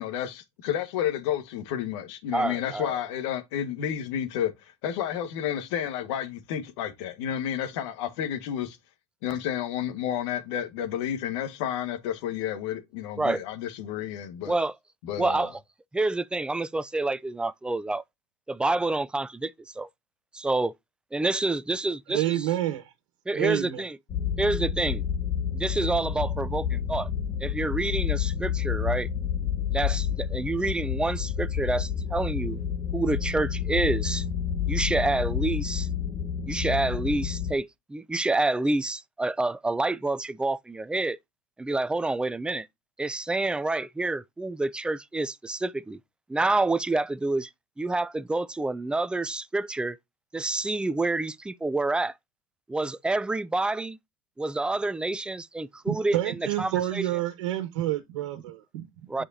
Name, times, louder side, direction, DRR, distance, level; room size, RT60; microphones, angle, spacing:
voice 1, 0.0-8.8 9.2-14.6 15.0-15.5, left 10 dB, 75° left, 1.7 m, -31 dB
voice 2, 2.3-2.9 13.2-13.4 14.5-14.7 15.2-15.5 15.9-18.0 18.5-19.9 20.3-20.7 21.1-22.4 23.3-24.0 24.4-25.0 25.5-27.1 27.4-29.1 29.7-32.6 32.9-34.2 34.7-35.9 36.5-41.2 41.6-42.7 43.0-46.0 46.3-47.5 47.8-50.0 50.3-52.1 52.7-54.0 54.4-57.0 59.1-59.2, right 2 dB, 5° right, 0.4 m, -28 dB
voice 3, 22.1-22.9 23.3-23.8 55.9-58.9, right 13 dB, 80° right, 1.5 m, -28 dB
sound 1, 24.1-37.6, left 8 dB, 40° left, 1.2 m, -29 dB
8.7 x 4.9 x 2.7 m
supercardioid pair, 120°, 15 cm